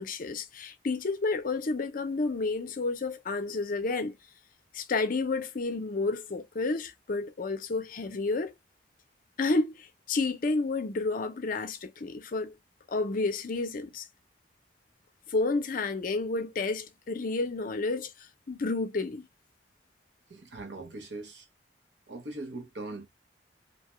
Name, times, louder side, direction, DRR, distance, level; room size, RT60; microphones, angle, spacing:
voice 1, 0.0-4.2 4.7-8.5 9.4-12.5 12.9-14.1 15.3-18.1 18.5-19.2, left 3 dB, 50° left, 0.5 m, -30 dB
voice 2, 20.3-21.5 22.1-23.1, right 2 dB, 80° right, 0.8 m, -40 dB
2.8 x 2.2 x 2.9 m
head